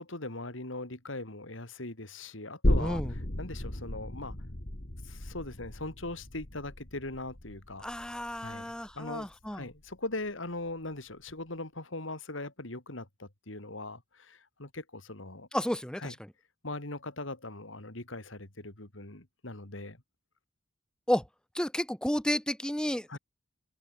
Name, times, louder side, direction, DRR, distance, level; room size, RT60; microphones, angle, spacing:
voice 1, 0.0-4.4 5.0-7.8 8.4-15.5 16.0-16.2 16.6-20.0 23.1-23.2, left 2 dB, 75° left, 3.6 m, -40 dB
sound 1, 2.6-9.9 10.3-10.4, left 1 dB, 50° left, 2.4 m, -34 dB
voice 2, 2.7-3.1 7.8-9.6 15.5-16.1 21.1-21.2 21.5-23.2, equal, 5° left, 1.0 m, -31 dB
head